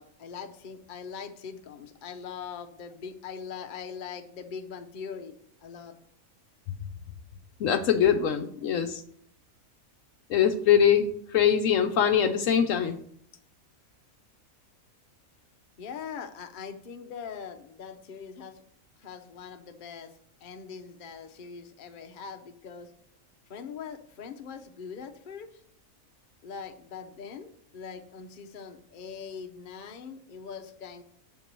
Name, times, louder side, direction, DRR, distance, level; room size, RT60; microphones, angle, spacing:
voice 1, 0.0-5.3 5.6-6.0 15.8-18.6 19.0-20.1 20.4-22.9 23.5-25.5 26.4-31.0, left 6 dB, 45° left, 6 dB, 0.8 m, -41 dB
voice 2, 7.6-9.0 10.3-13.0, left 8 dB, 70° left, 8 dB, 0.9 m, -23 dB
7.4 x 4.6 x 6.7 m, 0.66 s
omnidirectional pair, 1.5 m